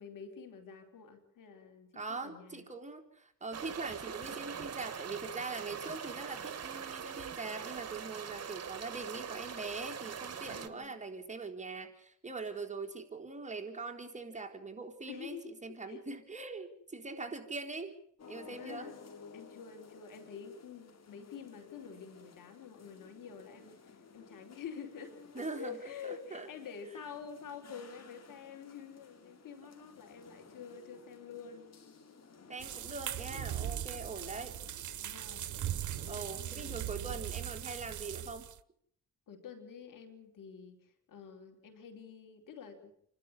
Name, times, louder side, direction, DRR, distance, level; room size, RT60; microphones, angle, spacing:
voice 1, 0.0-2.7 10.5-11.0 15.1-16.0 18.5-19.0 19.3-31.7 35.0-35.5 36.0-37.2 39.3-42.9, left 6 dB, 75° left, 6 dB, 4.3 m, -48 dB
voice 2, 1.9-17.9 18.3-18.9 25.3-25.8 26.0-26.5 32.5-34.6 36.1-38.5, right 3 dB, 20° right, 2 dB, 3.8 m, -42 dB
sound 1, 3.5-10.7, right 7 dB, 50° right, 2.2 m, -42 dB
sound 2, 18.2-36.7, left 5 dB, 50° left, 3.9 m, -56 dB
sound 3, 32.6-38.6, right 11 dB, 65° right, 1.0 m, -39 dB
28.5 x 12.5 x 9.8 m, 0.68 s
cardioid pair, 90°, 32 cm